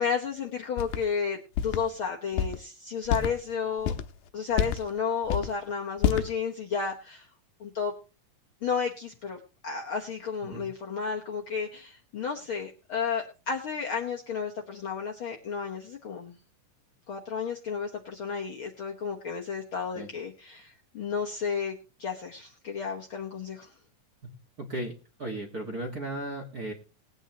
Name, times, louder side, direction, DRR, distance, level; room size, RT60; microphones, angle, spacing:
voice 1, 0.0-3.9 4.3-7.3 7.6-7.9 8.6-16.3 17.1-23.7, left 6 dB, 55° left, 1 dB, 1.5 m, -32 dB
sound 1, 0.8-1.0 1.6-1.8 2.4-2.6 3.1-3.3 3.8-4.1 4.5-4.9 5.2-5.5 6.0-6.3, left 9 dB, 90° left, 2.5 m, -27 dB
voice 2, 24.6-24.9 25.2-26.7, right 1 dB, 40° right, 1 dB, 1.5 m, -35 dB
20.0 x 9.0 x 2.9 m, 0.31 s
omnidirectional pair, 3.7 m